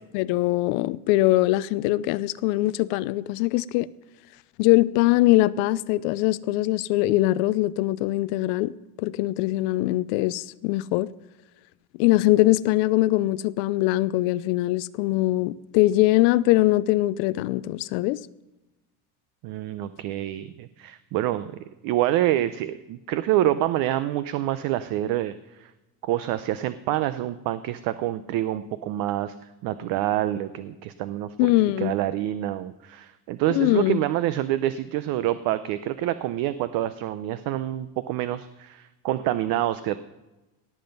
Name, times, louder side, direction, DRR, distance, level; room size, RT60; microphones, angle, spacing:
voice 1, 0.1-3.9 4.6-8.7 9.0-11.1 12.0-18.2 31.4-31.9 33.5-34.0, left 17 dB, 85° left, 0.6 m, -22 dB
voice 2, 19.4-21.5 21.8-25.7 26.0-29.3 29.6-31.3 31.8-40.0, right 13 dB, 60° right, 0.6 m, -27 dB
17.5 x 7.8 x 5.3 m
cardioid pair, 150°, 40 cm